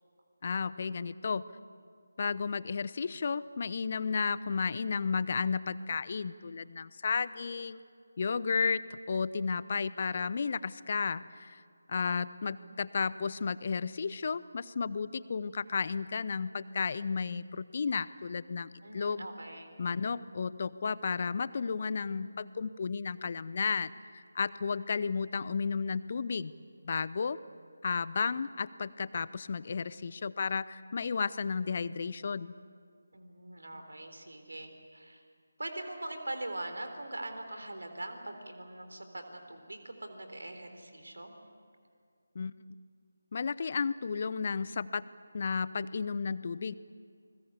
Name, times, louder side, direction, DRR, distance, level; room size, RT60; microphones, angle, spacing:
voice 1, 0.4-1.4 2.2-7.8 8.2-11.6 11.9-19.3 19.8-26.5 26.8-27.4 27.8-32.5 42.3-42.5 43.3-45.0 45.3-46.7, left 5 dB, 35° left, 18 dB, 0.6 m, -33 dB
voice 2, 18.8-19.8 33.1-35.2 35.6-41.3, right 1 dB, 65° right, 6 dB, 3.7 m, -42 dB
28.5 x 21.0 x 8.3 m, 2.2 s
figure-of-eight pair, 155°, 0 cm